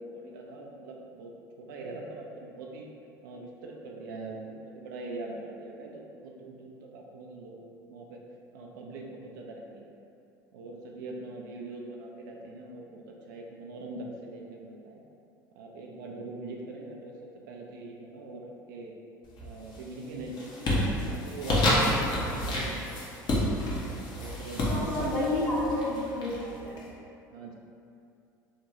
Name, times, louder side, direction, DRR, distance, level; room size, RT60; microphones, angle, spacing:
voice 1, 0.0-1.3 1.6-2.9 3.2-8.2 8.5-9.9 10.5-15.0 15.5-17.1 17.5-18.9 19.4-23.0 24.1-25.5 27.3-27.6, right 2 dB, 70° right, 0 dB, 0.4 m, -42 dB
sound 1, 19.3-19.8 20.2-26.8, left 1 dB, 45° left, 0.7 m, -29 dB
voice 2, 24.6-26.8, left 1 dB, 65° left, -9 dB, 1.0 m, -30 dB
2.9 x 2.2 x 2.7 m, 2.6 s
hypercardioid pair, 65°, 11 cm